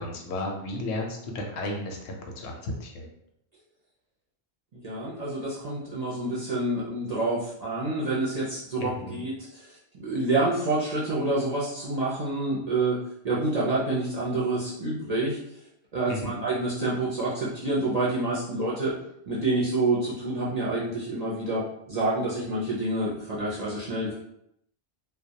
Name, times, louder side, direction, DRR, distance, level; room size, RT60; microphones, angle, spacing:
voice 1, 0.0-3.1 8.8-9.2 16.1-16.4, left 1 dB, 75° left, 1 dB, 0.8 m, -34 dB
voice 2, 4.7-13.0 13.2-15.4 15.9-18.9 19.3-24.1, right 2 dB, 50° right, -6 dB, 0.5 m, -28 dB
2.2 x 2.2 x 2.7 m, 0.75 s
omnidirectional pair, 1.2 m